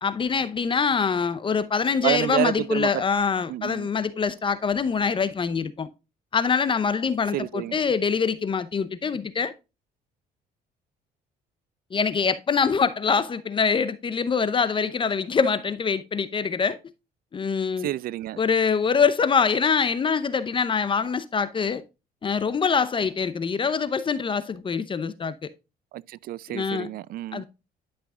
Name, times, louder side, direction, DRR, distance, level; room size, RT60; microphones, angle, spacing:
voice 1, 0.0-5.9 6.3-9.5 11.9-16.8 17.3-17.9 18.4-21.8 22.2-25.5 26.5-26.9 27.3-27.4, left 5 dB, 30° left, 0.7 m, -24 dB
voice 2, 2.0-3.0 3.5-3.9 7.3-7.8 17.8-18.4 25.9-27.4, right 14 dB, 60° right, 0.4 m, -29 dB
11.0 x 5.9 x 2.3 m
cardioid pair, 110°, 17 cm